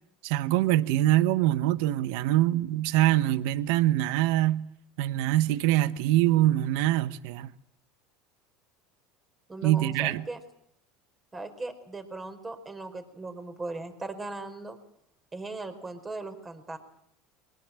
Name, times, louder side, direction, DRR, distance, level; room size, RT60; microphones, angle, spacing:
voice 1, 0.2-4.6 5.0-7.5 9.6-10.2, right 14 dB, 75° right, 1.0 m, -24 dB
voice 2, 9.5-10.4 11.3-14.8 15.3-16.8, right 3 dB, 20° right, 4.9 m, -38 dB
23.0 x 19.5 x 8.9 m
supercardioid pair, 110°, 0 cm